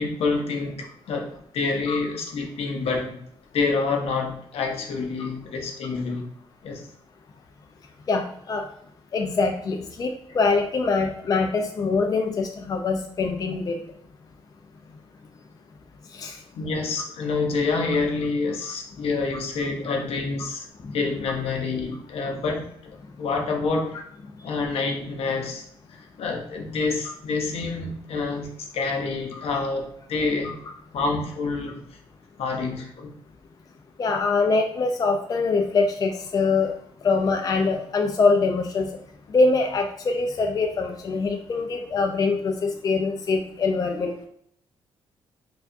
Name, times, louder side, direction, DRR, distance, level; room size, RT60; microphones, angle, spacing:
voice 1, 0.0-3.2 3.5-6.3 6.6-6.9 16.5-20.7 20.9-22.7 23.2-24.0 24.4-30.6 30.9-32.0 32.4-33.1, left 4 dB, 75° left, 2 dB, 0.7 m, -27 dB
voice 2, 8.1-8.6 9.1-13.8 16.1-16.4 19.9-20.0 20.8-21.0 34.0-36.7 37.0-38.9 39.3-44.1, left 4 dB, 35° left, 3 dB, 0.4 m, -23 dB
4.4 x 2.4 x 2.5 m, 0.69 s
cardioid pair, 105°, 10 cm